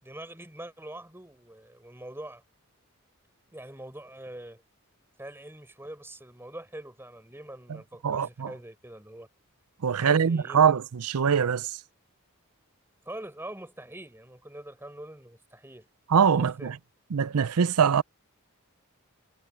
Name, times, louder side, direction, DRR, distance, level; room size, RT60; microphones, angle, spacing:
voice 1, 0.0-2.4 3.5-4.6 5.2-9.3 10.0-10.8 13.0-15.9 16.4-16.7, right 1 dB, 10° right, 4.3 m, -44 dB
voice 2, 8.0-8.5 9.8-11.8 16.1-16.7 17.1-18.0, right 7 dB, 85° right, 0.5 m, -23 dB
head